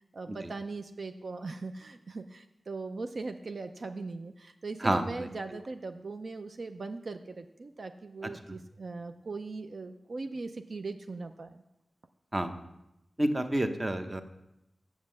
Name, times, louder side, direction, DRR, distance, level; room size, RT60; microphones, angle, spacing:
voice 1, 0.0-11.6, right 3 dB, 60° right, 7 dB, 0.5 m, -40 dB
voice 2, 4.8-5.3 12.3-12.6 13.2-14.2, right 1 dB, 25° right, 7 dB, 0.8 m, -29 dB
7.4 x 7.1 x 7.6 m, 0.88 s
wide cardioid pair, 115°, 0 cm